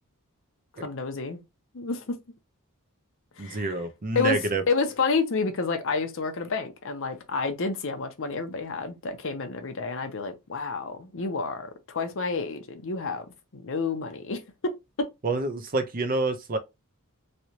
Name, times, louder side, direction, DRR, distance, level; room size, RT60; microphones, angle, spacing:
voice 1, 0.8-1.4 1.7-2.0 3.4-3.7 4.1-4.4 4.7-13.3 13.5-14.4, left 4 dB, 60° left, 0.7 m, -29 dB
voice 2, 3.4-4.6 15.2-16.6, right 2 dB, 40° right, 0.6 m, -27 dB
3.2 x 2.8 x 2.8 m
head